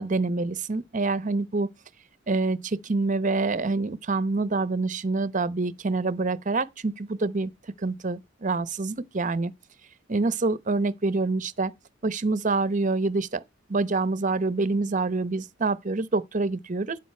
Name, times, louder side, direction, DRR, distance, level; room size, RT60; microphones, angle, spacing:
voice 1, 0.0-1.7 2.3-7.5 7.8-9.5 10.1-11.7 12.0-13.4 13.7-17.0, right 3 dB, 40° right, 0.8 m, -26 dB
12.0 x 9.0 x 4.4 m
head